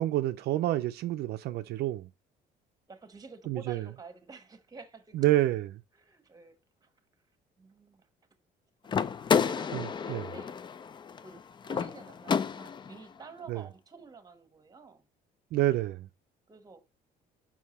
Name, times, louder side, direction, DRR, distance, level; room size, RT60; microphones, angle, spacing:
voice 1, 0.0-2.1 3.5-3.9 5.1-5.7 9.7-10.3 13.5-13.6 15.5-16.1, right 15 dB, 70° right, 0.4 m, -28 dB
voice 2, 2.9-5.3 5.9-6.9 7.6-8.1 8.8-9.0 9.3-10.5 11.2-15.0 16.5-16.8, right 4 dB, 20° right, 1.2 m, -50 dB
sound 1, 8.9-13.0, left 6 dB, 25° left, 0.4 m, -30 dB
5.8 x 4.6 x 4.1 m
cardioid pair, 110°, 17 cm